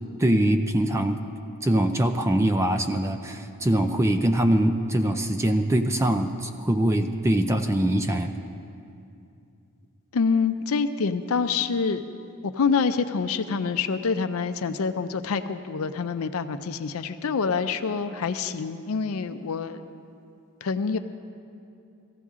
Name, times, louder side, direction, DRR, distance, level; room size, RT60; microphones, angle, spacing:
voice 1, 0.2-1.2 1.6-8.3, right 1 dB, 15° right, 7 dB, 0.4 m, -23 dB
voice 2, 10.1-12.0 12.4-19.8 20.6-21.0, left 5 dB, 75° left, 9 dB, 0.5 m, -26 dB
18.0 x 14.5 x 3.7 m, 2.6 s
head